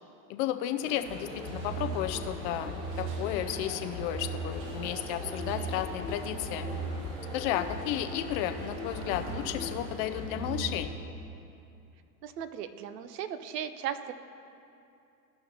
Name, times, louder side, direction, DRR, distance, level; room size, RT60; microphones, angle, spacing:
voice 1, 0.3-6.7 7.3-10.9, left 12 dB, 35° left, 8 dB, 0.5 m, -33 dB
sound 1, 0.8-10.8, right 2 dB, 55° right, 1.6 m, -45 dB
sound 2, 1.1-10.9, right 1 dB, ahead, 1.6 m, -38 dB
voice 2, 12.2-14.1, right 9 dB, 75° right, 11 dB, 0.8 m, -37 dB
16.0 x 5.7 x 2.9 m, 2.6 s
hypercardioid pair, 120°, 49 cm